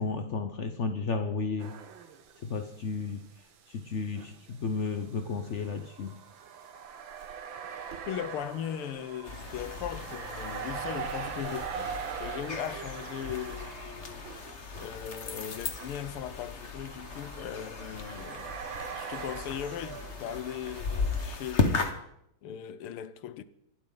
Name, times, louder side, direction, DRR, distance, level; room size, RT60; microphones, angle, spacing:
voice 1, 0.0-1.7 2.4-3.3 3.7-6.2, left 4 dB, 65° left, 0.7 m, -33 dB
sound 1, 1.6-2.7 3.0-3.1 4.1-21.4, right 7 dB, 65° right, 1.9 m, -42 dB
voice 2, 8.1-14.3 14.7-18.5 18.9-21.8 22.4-23.4, left 10 dB, 85° left, 1.7 m, -38 dB
sound 2, 9.2-21.9, left 4 dB, 35° left, 1.4 m, -36 dB
26.5 x 12.0 x 3.9 m
omnidirectional pair, 2.4 m